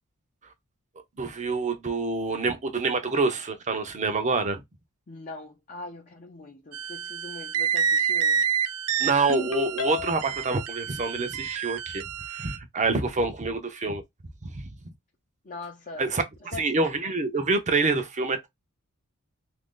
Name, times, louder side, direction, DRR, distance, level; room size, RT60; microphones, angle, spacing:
voice 1, 1.2-4.6 9.0-14.0 14.5-14.7 16.0-16.2 16.6-18.5, right 3 dB, 35° right, 0.6 m, -26 dB
voice 2, 5.1-8.4 15.4-16.0 16.5-16.7, left 3 dB, 40° left, 0.6 m, -41 dB
sound 1, 6.7-12.6, right 7 dB, 85° right, 0.4 m, -28 dB
Ringtone, 9.3-10.5, left 9 dB, 85° left, 0.7 m, -32 dB
2.9 x 2.5 x 3.7 m
head